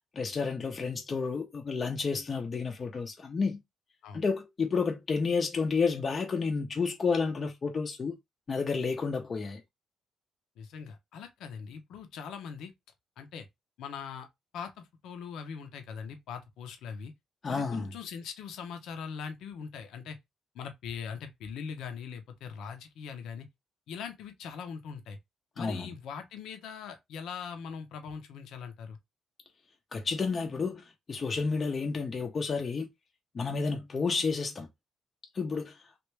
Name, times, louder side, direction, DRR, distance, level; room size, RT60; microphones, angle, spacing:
voice 1, 0.2-3.6 4.1-8.2 8.5-9.6 17.4-17.9 25.6-25.9 29.9-32.9 33.3-34.7 35.3-35.8, left 4 dB, 40° left, 0.6 m, -30 dB
voice 2, 10.6-12.7 13.2-13.5 13.8-14.3 14.5-17.1 17.5-20.2 20.5-23.5 23.9-25.2 25.6-29.0, left 6 dB, 80° left, 0.7 m, -41 dB
3.3 x 2.5 x 3.2 m
cardioid pair, 90°, 0 cm